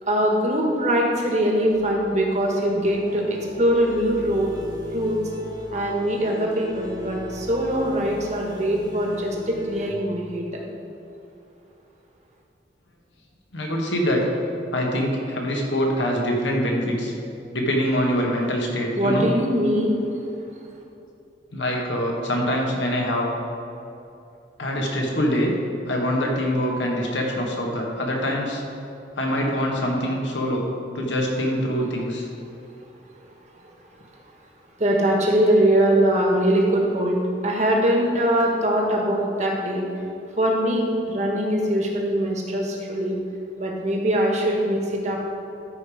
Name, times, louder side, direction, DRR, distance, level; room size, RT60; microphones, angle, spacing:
voice 1, 0.0-4.5 4.9-5.2 5.7-10.5 18.9-20.0 33.6-33.7 34.8-39.9 40.4-43.1 43.6-45.2, right 1 dB, 40° right, -1 dB, 1.5 m, -22 dB
sound 1, 1.7-9.9, left 1 dB, 25° right, 0.9 m, -40 dB
voice 2, 13.5-14.3 14.7-17.1 17.5-19.3 21.5-23.3 24.6-25.5 25.9-28.6 29.2-30.6 30.9-32.3, equal, 85° left, 0 dB, 1.7 m, -24 dB
12.5 x 5.3 x 5.1 m, 2.8 s
head